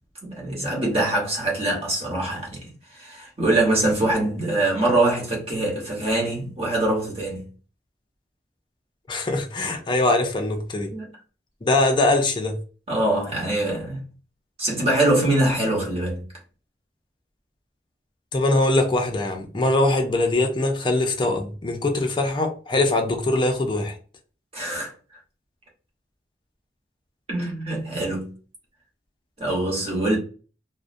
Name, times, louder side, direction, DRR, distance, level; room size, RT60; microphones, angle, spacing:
voice 1, 0.2-2.6 2.9-7.5 10.9-11.1 12.9-14.0 14.6-16.2 24.5-24.9 27.3-28.3 29.4-30.2, right 2 dB, 35° right, 0.9 m, -23 dB
voice 2, 9.1-10.9 11.6-12.6 18.3-24.0, left 2 dB, 25° left, 0.4 m, -22 dB
2.4 x 2.0 x 2.5 m
head